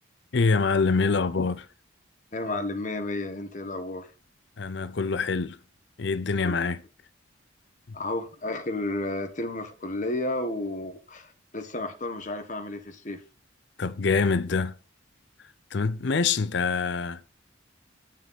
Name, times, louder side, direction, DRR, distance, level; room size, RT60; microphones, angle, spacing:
voice 1, 0.3-1.7 4.6-5.6 6.0-6.8 7.9-8.0 13.8-14.8 15.7-17.3, left 4 dB, 55° left, 0.5 m, -25 dB
voice 2, 2.3-4.1 6.4-6.5 7.9-13.2, left 2 dB, 35° left, 1.3 m, -32 dB
9.4 x 6.7 x 4.1 m
head